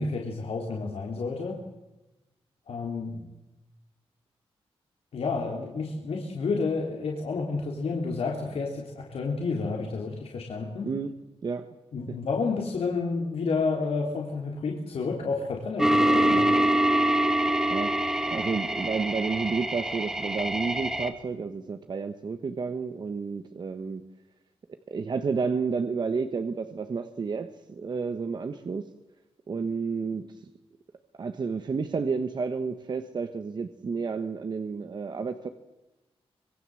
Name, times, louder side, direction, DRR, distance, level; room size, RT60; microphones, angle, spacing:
voice 1, 0.0-1.6 2.7-3.3 5.1-10.9 11.9-16.6, left 4 dB, 70° left, 0 dB, 3.4 m, -30 dB
voice 2, 10.8-11.1 11.4-11.7 16.3-16.4 17.7-18.0 18.3-24.0 24.9-28.9 29.5-30.4 31.2-35.5, right 5 dB, 45° right, 8 dB, 1.2 m, -31 dB
sound 1, 15.8-21.1, right 1 dB, 5° right, 2.2 m, -25 dB
25.5 x 22.5 x 7.8 m, 1.0 s
wide cardioid pair, 145°, 10 cm